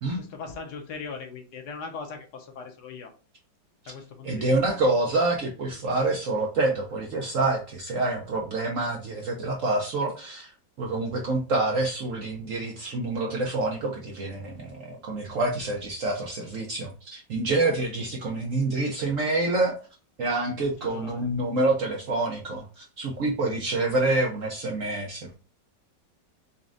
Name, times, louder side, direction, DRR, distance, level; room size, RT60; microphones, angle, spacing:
voice 1, 0.2-3.1 3.8-4.7 20.5-21.3, left 5 dB, 70° left, 4 dB, 1.2 m, -40 dB
voice 2, 4.2-10.5 10.8-19.8 20.2-25.3, right 2 dB, 60° right, 0 dB, 0.8 m, -27 dB
4.1 x 3.6 x 2.5 m, 0.35 s
omnidirectional pair, 2.0 m